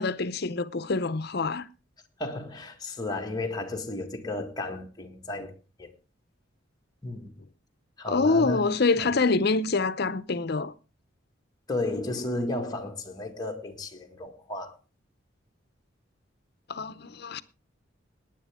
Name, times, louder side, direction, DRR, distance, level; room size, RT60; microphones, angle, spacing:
voice 1, 0.0-1.7 8.1-10.7 16.7-17.4, left 3 dB, 55° left, 0.7 m, -26 dB
voice 2, 2.2-5.5 5.8-5.9 7.0-7.3 8.0-8.7 9.0-9.1 11.7-14.7, left 2 dB, 20° left, 1.8 m, -33 dB
18.0 x 10.0 x 3.6 m
head